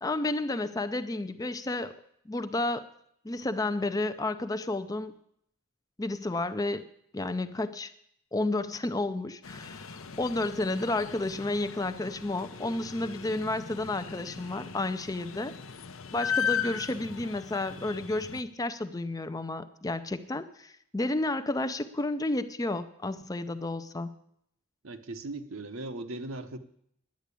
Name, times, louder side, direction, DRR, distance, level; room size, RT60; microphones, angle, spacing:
voice 1, 0.0-2.0 2.3-2.9 3.2-5.1 6.0-6.9 7.1-7.9 8.3-15.5 16.1-24.1, left 2 dB, 15° left, 11 dB, 0.5 m, -31 dB
Allahabad Traffic, 9.4-18.4, left 7 dB, 65° left, 0.7 m, -37 dB
voice 2, 24.8-26.6, right 2 dB, 65° right, 9 dB, 1.0 m, -38 dB
10.5 x 9.3 x 8.3 m, 0.70 s
head